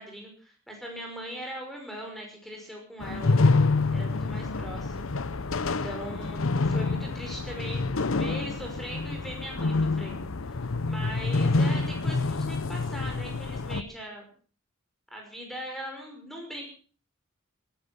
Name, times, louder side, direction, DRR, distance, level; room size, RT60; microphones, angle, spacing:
voice 1, 0.0-3.4 3.9-5.2 5.6-10.6 10.8-14.3 15.1-16.6, equal, ahead, 1 dB, 5.6 m, -40 dB
sound 1, 3.0-13.8, left 3 dB, 75° left, 0.8 m, -27 dB
19.0 x 12.0 x 6.1 m, 0.41 s
head